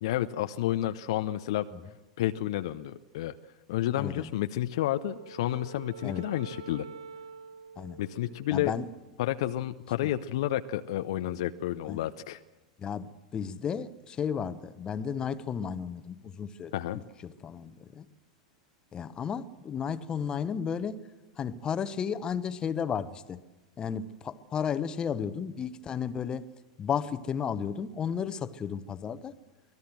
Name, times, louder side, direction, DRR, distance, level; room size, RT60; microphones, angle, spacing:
voice 1, 0.0-1.7 2.2-3.3 3.7-6.8 8.0-8.7 9.2-12.4 16.7-17.0, left 13 dB, 60° left, 10 dB, 0.6 m, -30 dB
voice 2, 4.0-4.3 6.0-6.3 7.8-8.0 8.5-8.9 11.9-12.0 12.8-18.1 18.9-21.0 21.4-23.4 23.8-26.4 26.8-29.3, left 7 dB, 25° left, 13 dB, 1.0 m, -33 dB
Wind instrument woodwind instrument, 4.7-9.1, right 5 dB, 75° right, 0.8 m, -47 dB
24.5 x 17.5 x 7.7 m, 1.1 s
figure-of-eight pair, 90°, 3 cm